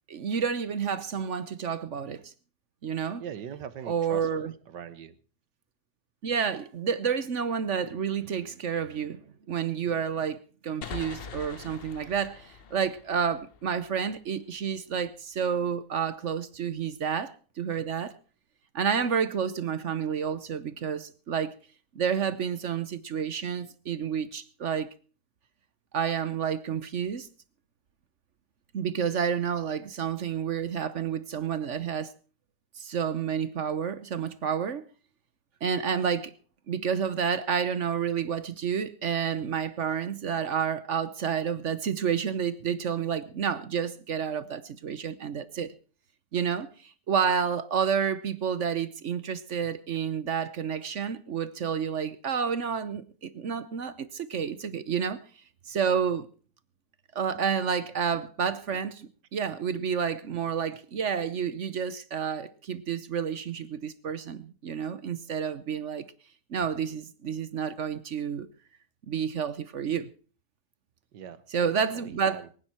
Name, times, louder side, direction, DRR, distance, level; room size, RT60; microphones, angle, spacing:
voice 1, 0.1-2.3 2.8-3.2 3.9-4.5 6.2-9.2 9.5-10.4 10.6-18.1 18.7-21.5 21.9-24.9 25.9-27.3 28.7-32.1 32.8-34.8 35.6-36.3 36.7-45.7 46.3-55.2 55.7-56.3 57.1-66.1 66.5-68.5 69.1-70.1 71.5-72.6, right 7 dB, 50° right, 1.0 m, -30 dB
voice 2, 3.2-5.2 71.1-72.5, right 8 dB, 90° right, 1.7 m, -41 dB
sound 1, 10.8-14.3, left 6 dB, 45° left, 0.8 m, -43 dB
23.5 x 9.9 x 4.4 m
omnidirectional pair, 1.8 m